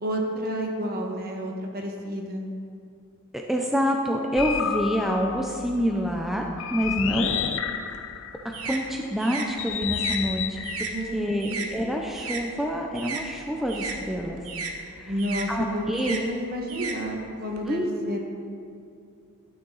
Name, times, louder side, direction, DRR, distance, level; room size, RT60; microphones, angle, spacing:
voice 1, 0.0-2.5 10.9-11.6 15.1-18.2, equal, 45° right, 1 dB, 1.4 m, -31 dB
voice 2, 3.3-6.5 6.7-7.4 8.6-14.4 14.9-15.1 15.5-16.3 17.7-18.1, equal, ahead, 0 dB, 0.6 m, -27 dB
sound 1, 4.4-8.7 9.6-12.0, left 8 dB, 60° left, 0.5 m, -31 dB
sound 2, 7.7-12.5 12.8-17.6, right 4 dB, 75° right, 1.0 m, -36 dB
12.5 x 8.9 x 4.0 m, 2.5 s
head